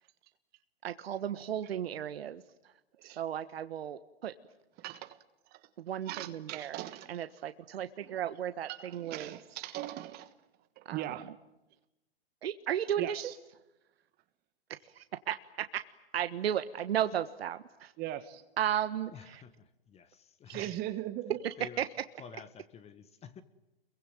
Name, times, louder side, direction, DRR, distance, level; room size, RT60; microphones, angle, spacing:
voice 1, 0.8-2.7 3.0-4.3 5.8-6.8 7.1-9.3 10.8-11.3 12.4-13.3 14.7-15.8 16.1-17.9 18.6-19.4 20.5-20.7 21.8-21.9, right 10 dB, 75° right, 1.4 m, -35 dB
voice 2, 4.8-5.2 5.5-5.6 6.1-7.1 8.0-8.2 8.6-10.3 10.8-11.3 13.0-13.3 18.0-18.4 20.5-21.4, right 14 dB, 30° right, 1.4 m, -39 dB
voice 3, 19.1-20.7 21.6-21.8 22.2-23.4, left 7 dB, 20° left, 1.5 m, -50 dB
28.0 x 23.0 x 9.1 m
hypercardioid pair, 130°, 30 cm